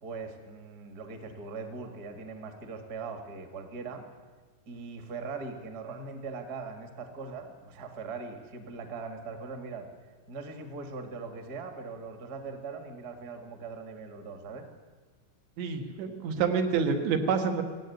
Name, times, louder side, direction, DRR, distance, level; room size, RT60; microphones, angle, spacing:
voice 1, 0.0-4.0 4.6-9.9 10.3-14.7, right 4 dB, 40° right, 6 dB, 1.4 m, -40 dB
voice 2, 15.6-17.6, right 5 dB, 85° right, 5 dB, 4.0 m, -27 dB
18.0 x 17.0 x 9.3 m, 1.4 s
omnidirectional pair, 5.0 m